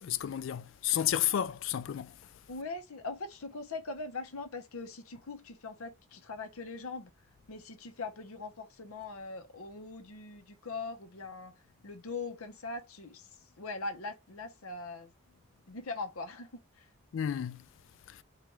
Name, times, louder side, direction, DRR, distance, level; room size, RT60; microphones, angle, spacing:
voice 1, 0.0-2.1 17.1-17.6 18.1-18.2, left 10 dB, 60° left, 0.3 m, -31 dB
voice 2, 2.5-7.1 7.5-11.5 11.8-13.2 13.6-15.1 15.7-16.6, left 3 dB, 85° left, 0.9 m, -41 dB
4.5 x 2.5 x 3.0 m
head